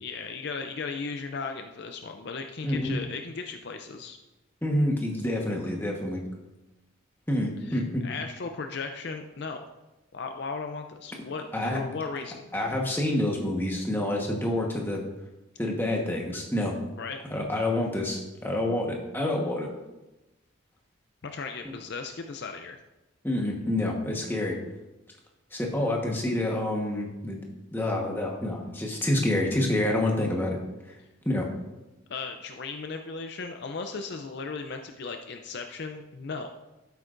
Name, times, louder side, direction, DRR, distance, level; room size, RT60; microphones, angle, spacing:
voice 1, 0.0-4.2 7.6-9.6 10.1-12.5 17.0-17.2 21.2-22.8 32.1-36.5, left 4 dB, 55° left, 5 dB, 0.5 m, -36 dB
voice 2, 2.6-3.0 4.6-6.2 7.3-8.0 11.5-11.8 12.5-15.0 15.6-16.7 17.3-19.7 21.6-21.8 23.2-24.6 25.5-27.4 27.7-30.6 31.2-31.5, left 1 dB, 10° left, -1 dB, 1.2 m, -27 dB
12.5 x 8.1 x 2.6 m, 1.0 s
head